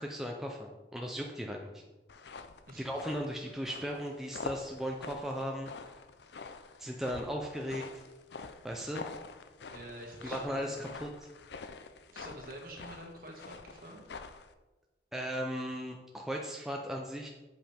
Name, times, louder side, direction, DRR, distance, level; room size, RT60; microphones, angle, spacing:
voice 1, 0.0-1.8 2.7-6.0 6.8-7.9 8.6-9.0 10.2-11.3 15.1-17.3, equal, ahead, 0 dB, 0.5 m, -37 dB
sound 1, 2.1-14.5, left 4 dB, 70° left, 0.5 m, -46 dB
voice 2, 9.7-10.7 12.1-14.0, right 1 dB, 50° right, 0 dB, 1.6 m, -47 dB
7.9 x 5.4 x 4.3 m, 1.1 s
head